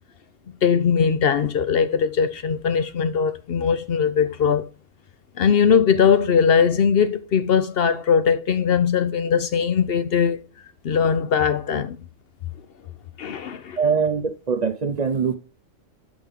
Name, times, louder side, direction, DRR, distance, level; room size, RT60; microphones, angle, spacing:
voice 1, 0.5-4.7 5.4-10.4 10.8-12.0 13.2-13.8, left 7 dB, 55° left, 0.7 m, -20 dB
voice 2, 13.8-15.4, right 6 dB, 50° right, 0.5 m, -22 dB
7.5 x 6.1 x 3.5 m
omnidirectional pair, 1.4 m